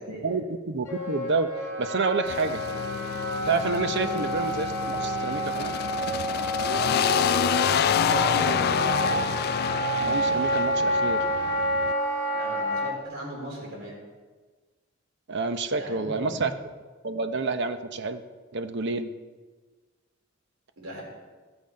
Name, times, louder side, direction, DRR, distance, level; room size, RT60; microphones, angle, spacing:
voice 1, 0.2-1.5 1.8-2.6 3.4-4.7 5.0-5.8 10.0-11.3 15.3-16.5 17.0-18.2 18.5-19.1, right 4 dB, 55° right, 9 dB, 0.7 m, -28 dB
Wind instrument woodwind instrument, 0.9-12.9, equal, 15° left, 2.8 m, -29 dB
sound 1, 2.3-11.9, left 8 dB, 50° left, 0.3 m, -28 dB
voice 2, 7.7-9.2 12.3-14.0 15.7-16.4 20.8-21.0, right 1 dB, 90° right, -2 dB, 3.6 m, -37 dB
15.0 x 7.0 x 5.2 m, 1.4 s
head